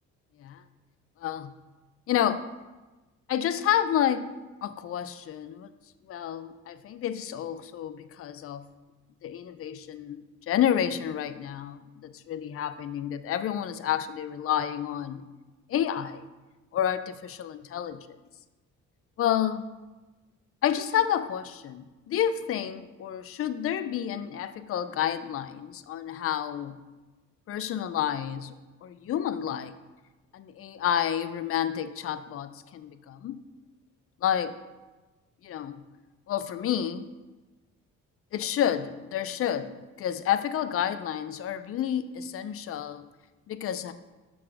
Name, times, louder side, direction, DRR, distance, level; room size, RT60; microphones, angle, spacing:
voice 1, 1.2-1.5 2.1-2.4 3.3-4.3 4.6-5.7 6.1-8.7 9.2-15.2 15.7-16.3 16.7-18.1 19.2-19.7 20.6-26.8 27.5-28.5 28.8-29.7 30.3-33.4 34.2-34.6 35.4-35.8 36.3-37.1 38.3-43.1 43.5-43.9, left 10 dB, 50° left, 12 dB, 0.5 m, -29 dB
6.1 x 4.0 x 5.8 m, 1.2 s
cardioid pair, 90°, 30 cm